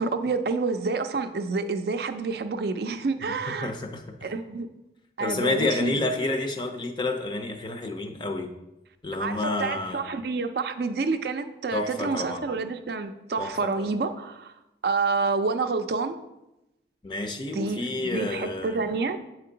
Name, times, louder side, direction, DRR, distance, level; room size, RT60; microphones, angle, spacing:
voice 1, 0.0-3.7 4.2-4.7 5.2-5.9 9.1-14.5 14.8-16.2 17.5-19.2, right 4 dB, 60° right, 8 dB, 0.4 m, -28 dB
voice 2, 3.6-4.0 5.2-8.5 9.0-10.1 11.7-12.4 13.4-13.9 17.0-18.8, left 2 dB, 25° left, 5 dB, 0.5 m, -29 dB
7.5 x 4.4 x 3.8 m, 0.93 s
head